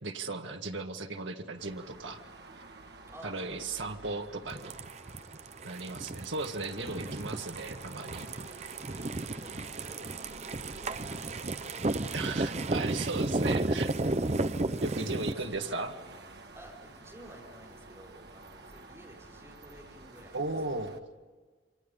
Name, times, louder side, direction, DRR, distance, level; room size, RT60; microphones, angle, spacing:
voice 1, 0.0-2.2 3.2-4.8 5.6-8.3 12.1-13.9 14.8-15.9 20.3-20.9, right 3 dB, 85° right, 4 dB, 2.1 m, -36 dB
sound 1, 1.6-21.0, right 2 dB, 60° right, 1.8 m, -51 dB
voice 2, 3.1-3.7 4.0-4.4 6.7-7.4 8.1-8.3 9.4-10.3 10.6-12.7 14.7-15.5 16.5-20.4, equal, 15° right, -3 dB, 5.1 m, -53 dB
sound 2, 4.5-15.3, right 2 dB, 35° right, 0.7 m, -33 dB
29.0 x 27.0 x 5.5 m, 1.4 s
head